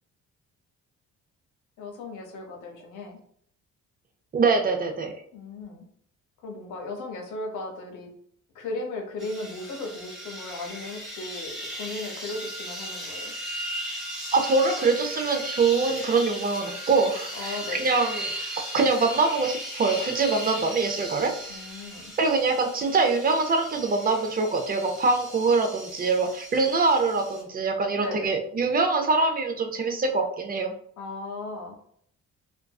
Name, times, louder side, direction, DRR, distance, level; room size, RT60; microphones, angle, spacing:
voice 1, 1.8-3.2 5.3-5.9 6.4-8.1 8.5-13.3 17.3-17.8 21.5-22.1 27.9-28.3 31.0-31.8, left 2 dB, 80° left, 3 dB, 0.7 m, -36 dB
voice 2, 4.3-5.1 14.3-21.3 22.2-30.7, right 4 dB, 30° right, 4 dB, 0.5 m, -24 dB
sound 1, 9.2-27.4, equal, ahead, 1.1 m, -37 dB
2.5 x 2.2 x 2.3 m, 0.64 s
cardioid pair, 90°, 30 cm